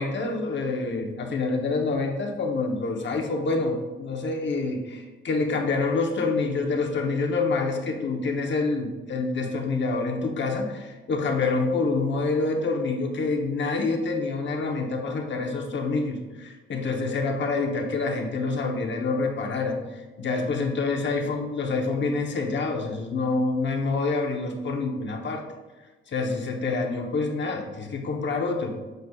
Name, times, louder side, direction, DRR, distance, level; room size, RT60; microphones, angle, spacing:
voice 1, 0.0-25.4 26.1-28.8, left 3 dB, 60° left, 2 dB, 1.0 m, -27 dB
7.9 x 5.1 x 2.4 m, 1.2 s
cardioid pair, 75°, 21 cm